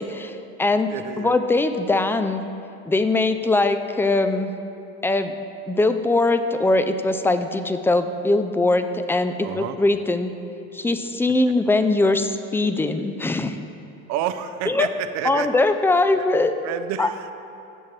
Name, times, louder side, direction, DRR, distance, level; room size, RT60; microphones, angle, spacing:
voice 1, 0.0-0.9 1.2-2.4 2.9-4.5 5.0-5.3 5.7-10.3 10.7-13.6 14.7-14.9 15.2-16.5 17.0-17.1, left 2 dB, 10° left, 9 dB, 0.4 m, -21 dB
voice 2, 0.9-1.4 9.4-9.8 14.1-15.5 16.1-16.3 16.6-17.3, right 10 dB, 65° right, 10 dB, 0.6 m, -29 dB
16.0 x 7.3 x 3.2 m, 2.7 s
cardioid pair, 125°, 30 cm